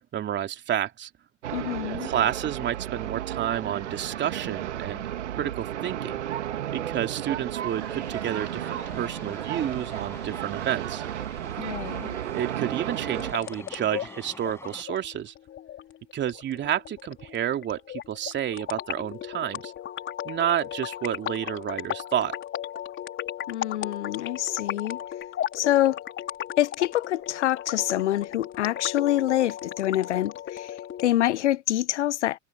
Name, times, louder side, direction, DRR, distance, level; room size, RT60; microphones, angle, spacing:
voice 1, 0.1-1.1 2.0-5.0 5.3-6.2 6.7-11.0 12.3-15.3 16.1-19.7 20.2-22.4, right 10 dB, 30° right, 3.0 m, -30 dB
sound 1, 1.4-13.3, right 11 dB, 70° right, 2.4 m, -33 dB
voice 2, 1.5-2.1 11.6-12.2 23.5-25.0 25.5-26.0 26.6-30.7 31.0-32.4, left 13 dB, 70° left, 0.9 m, -26 dB
sound 2, 7.7-14.8, left 2 dB, 5° left, 5.3 m, -46 dB
sound 3, 13.1-31.1, left 11 dB, 30° left, 4.1 m, -36 dB
figure-of-eight pair, 90°, 36 cm